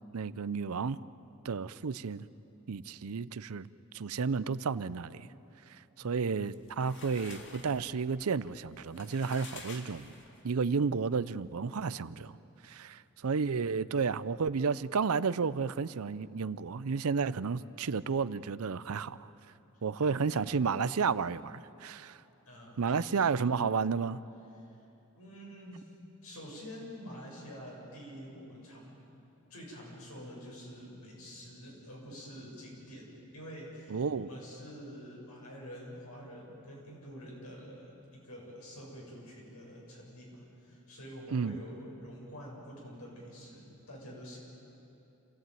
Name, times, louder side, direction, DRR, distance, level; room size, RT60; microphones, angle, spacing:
voice 1, 0.1-1.0 1.4-2.3 2.7-3.7 3.9-5.3 5.7-10.1 10.4-12.3 12.6-19.3 19.8-22.2 22.8-24.2 33.9-34.3 41.3-41.6, right 5 dB, 80° right, 17 dB, 0.6 m, -32 dB
voice 2, 6.0-6.5 13.5-13.9 20.3-20.5 22.5-23.3 24.6-24.8 25.2-25.9 26.2-28.9 29.5-44.4, equal, 90° left, -2 dB, 7.2 m, -47 dB
sound 1, 6.4-10.5, left 3 dB, 55° left, 2.4 m, -50 dB
27.0 x 16.0 x 9.2 m, 2.9 s
head